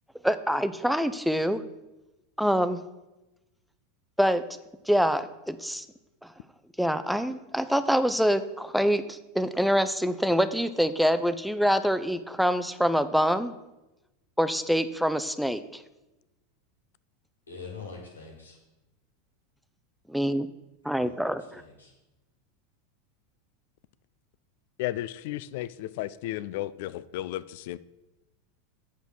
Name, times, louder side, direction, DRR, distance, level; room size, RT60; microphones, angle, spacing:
voice 1, 0.2-1.6 2.4-2.8 4.2-4.4 4.9-5.8 6.8-13.5 14.4-15.8 20.1-20.5 20.8-21.6, equal, ahead, 12 dB, 0.6 m, -25 dB
voice 2, 17.5-18.6 20.9-21.9, left 4 dB, 90° left, 0 dB, 2.5 m, -44 dB
voice 3, 24.8-27.8, left 15 dB, 60° left, 17 dB, 0.3 m, -34 dB
8.3 x 5.4 x 6.2 m, 1.0 s
hypercardioid pair, 90°, 0 cm